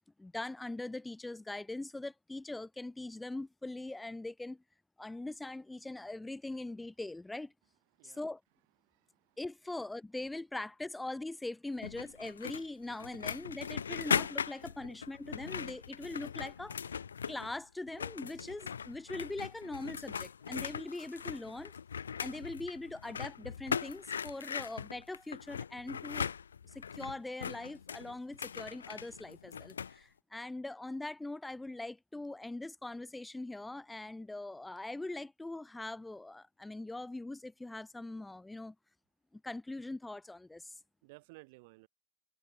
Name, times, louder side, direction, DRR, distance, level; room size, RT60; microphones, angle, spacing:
voice 1, 0.2-4.6 5.0-7.5 8.0-8.4 9.4-16.8 17.3-21.7 22.2-26.3 26.7-38.7 39.3-40.7, left 2 dB, 5° left, 6.8 m, -42 dB
voice 2, 8.8-9.4 41.0-41.9, right 25 dB, 50° right, 5.2 m, -57 dB
sound 1, 11.8-17.6 17.9-30.0, left 7 dB, 70° left, 2.2 m, -39 dB
figure-of-eight pair, 90°, 0 cm